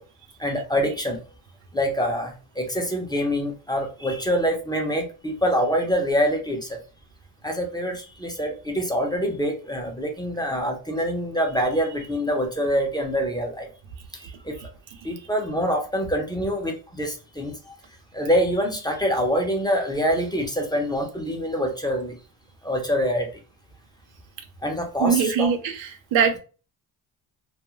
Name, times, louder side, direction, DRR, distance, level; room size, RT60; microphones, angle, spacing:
voice 1, 0.4-1.2 1.7-6.8 7.4-13.7 14.1-14.6 15.0-17.7 18.1-22.2 22.6-23.3 24.6-25.5, equal, 10° left, 2 dB, 0.7 m, -25 dB
voice 2, 25.0-26.4, right 6 dB, 70° right, 7 dB, 0.6 m, -23 dB
2.4 x 2.1 x 3.0 m, 0.35 s
cardioid pair, 70°, 48 cm